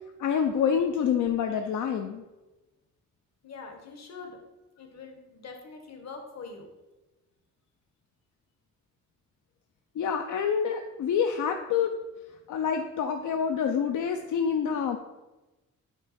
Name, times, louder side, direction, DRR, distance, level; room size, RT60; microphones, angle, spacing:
voice 1, 0.2-2.2 10.0-11.9 12.5-15.0, left 7 dB, 80° left, 5 dB, 0.5 m, -27 dB
voice 2, 3.4-4.4 4.8-6.7, left 4 dB, 60° left, 4 dB, 1.2 m, -44 dB
8.8 x 3.6 x 4.2 m, 1.1 s
wide cardioid pair, 145°, 30 cm